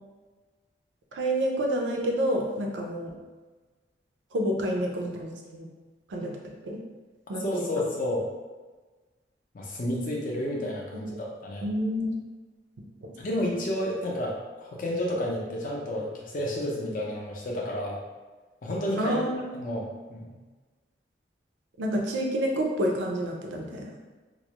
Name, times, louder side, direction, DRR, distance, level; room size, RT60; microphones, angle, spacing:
voice 1, 1.1-3.1 4.3-5.7 6.1-6.4 6.6-6.8 7.3-7.7 11.6-12.2 13.0-13.1 19.0-19.4 21.8-23.9, equal, 85° right, 1 dB, 0.4 m, -28 dB
voice 2, 7.4-8.3 9.5-11.7 13.2-18.0 18.6-19.2 19.5-20.4, left 1 dB, 45° left, -2 dB, 0.4 m, -31 dB
2.3 x 2.0 x 2.8 m, 1.3 s
head